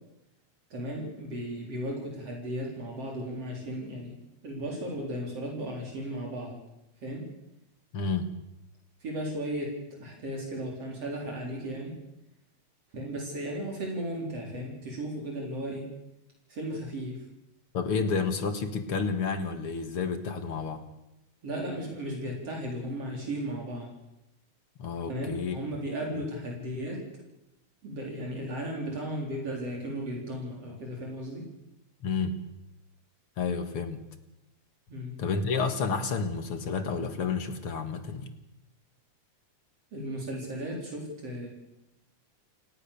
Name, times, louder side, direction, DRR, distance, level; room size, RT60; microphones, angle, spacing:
voice 1, 0.7-4.2 4.4-6.6 7.0-7.3 9.0-12.0 12.9-15.9 16.5-17.2 21.4-23.9 25.1-27.2 27.8-31.5 34.9-35.2 39.9-41.5, right 1 dB, 55° right, -1 dB, 5.2 m, -35 dB
voice 2, 7.9-8.3 17.7-20.9 24.8-25.6 32.0-32.4 33.4-34.0 35.2-38.3, left 5 dB, 55° left, 9 dB, 2.2 m, -30 dB
28.5 x 17.5 x 6.9 m, 0.91 s
omnidirectional pair, 3.3 m